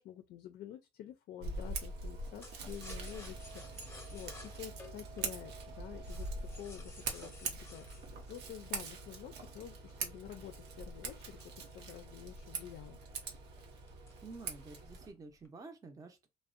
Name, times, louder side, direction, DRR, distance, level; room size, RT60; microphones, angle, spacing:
voice 1, 0.0-6.3 6.6-13.0, left 11 dB, 65° left, 0.4 m, -49 dB
Scissors, 1.4-15.1, right 3 dB, 85° right, 0.7 m, -43 dB
sound 1, 2.4-9.3 9.9-12.3 12.7-12.8 13.1-13.4 13.9-14.6 14.9-15.5, left 3 dB, 15° left, 0.7 m, -55 dB
voice 2, 14.2-16.3, right 3 dB, 20° right, 0.5 m, -50 dB
2.5 x 2.1 x 2.4 m
cardioid pair, 110°, 17 cm